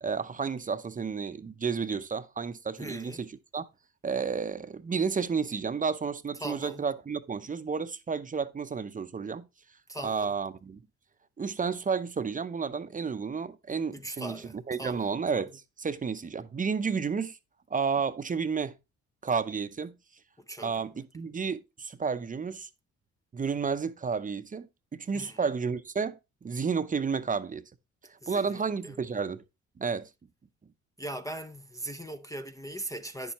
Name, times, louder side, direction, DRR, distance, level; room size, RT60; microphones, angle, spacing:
voice 1, 0.0-3.7 4.0-9.5 10.0-10.8 11.4-17.4 17.7-18.8 19.2-19.9 20.6-22.7 23.3-27.6 28.0-29.4 29.8-30.1, right 5 dB, 25° right, 0.7 m, -31 dB
voice 2, 2.8-3.2 6.4-6.8 9.9-10.3 13.9-15.1 20.5-20.7 25.1-25.4 28.2-29.0 31.0-33.3, right 1 dB, 10° left, 0.5 m, -40 dB
9.9 x 7.1 x 3.0 m
cardioid pair, 90°, 30 cm